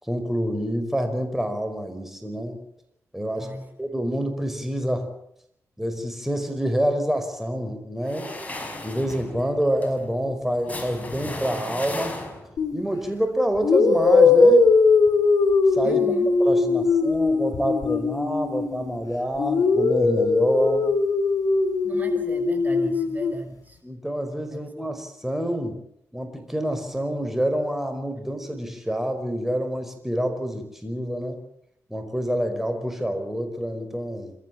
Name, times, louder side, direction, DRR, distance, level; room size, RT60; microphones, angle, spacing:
voice 1, 0.0-2.6 3.1-3.5 3.8-5.1 5.8-8.3 8.8-12.2 12.7-14.7 15.7-16.0 16.4-20.9 22.3-22.4 23.8-25.8 26.1-31.4 31.9-34.3, equal, 5° right, 6 dB, 5.2 m, -27 dB
voice 2, 3.4-3.7 15.8-16.3 21.8-23.8 24.5-24.9, right 1 dB, 25° right, 5 dB, 7.1 m, -37 dB
sound 1, 8.0-12.7, left 1 dB, 25° left, 5.7 m, -36 dB
sound 2, 12.6-12.8 13.6-19.0 19.4-23.3, left 4 dB, 75° left, 4.4 m, -20 dB
27.0 x 14.0 x 8.8 m, 0.72 s
cardioid pair, 60°, 6 cm